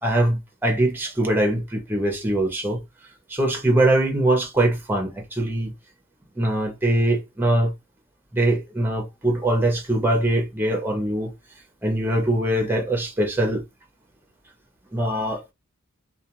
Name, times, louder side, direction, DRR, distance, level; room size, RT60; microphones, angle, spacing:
voice 1, 0.0-2.8 3.3-5.7 6.4-7.7 8.3-11.3 11.8-13.6 14.9-15.4, right 1 dB, 10° right, 0.7 m, -22 dB
2.4 x 2.3 x 2.9 m
head